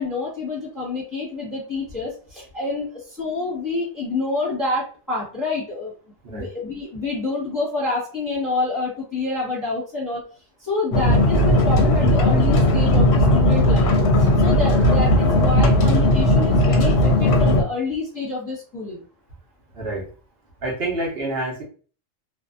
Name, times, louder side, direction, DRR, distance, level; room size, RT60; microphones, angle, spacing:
voice 1, 0.0-5.9 6.3-10.2 10.6-13.9 14.4-19.0, left 3 dB, 15° left, -7 dB, 1.0 m, -27 dB
sound 1, 10.9-17.6, left 1 dB, 65° left, 0.8 m, -17 dB
voice 2, 20.6-21.6, right 2 dB, 55° right, -2 dB, 0.9 m, -27 dB
2.6 x 2.3 x 2.4 m, 0.40 s
omnidirectional pair, 1.3 m